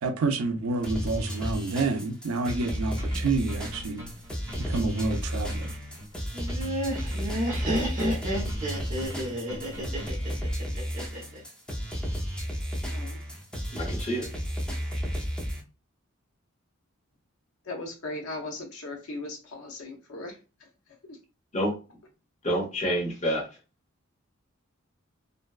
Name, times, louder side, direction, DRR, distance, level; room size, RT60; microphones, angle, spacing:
voice 1, 0.0-4.0 4.6-5.7, right 3 dB, 85° right, 0.5 m, -28 dB
sound 1, 0.8-15.6, equal, 5° left, 0.5 m, -33 dB
sound 2, 2.5-10.4, equal, 15° right, 1.0 m, -43 dB
Laughter, 6.3-11.4, equal, 40° right, 0.7 m, -31 dB
voice 2, 13.7-14.3 21.5-21.7 22.4-23.5, equal, 35° left, 0.9 m, -28 dB
voice 3, 17.6-20.7 21.0-21.2, left 2 dB, 85° left, 0.6 m, -38 dB
2.6 x 2.2 x 2.3 m
head